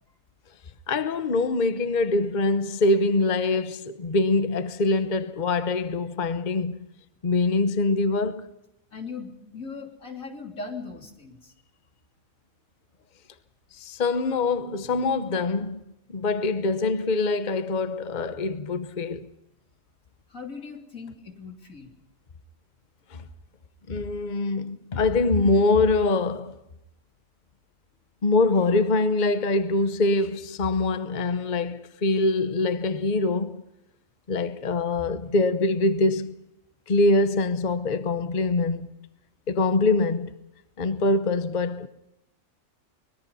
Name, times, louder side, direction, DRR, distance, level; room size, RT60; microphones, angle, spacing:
voice 1, 0.9-6.9 7.2-8.4 13.7-15.8 16.1-19.3 23.1-23.2 23.9-26.5 28.2-33.6 34.3-36.4 36.9-38.9 39.5-40.3 40.8-41.9, left 2 dB, 40° left, 1.0 m, -24 dB
voice 2, 8.9-11.5 20.3-22.0, left 4 dB, 90° left, 3.7 m, -39 dB
24.5 x 21.0 x 5.5 m
omnidirectional pair, 1.4 m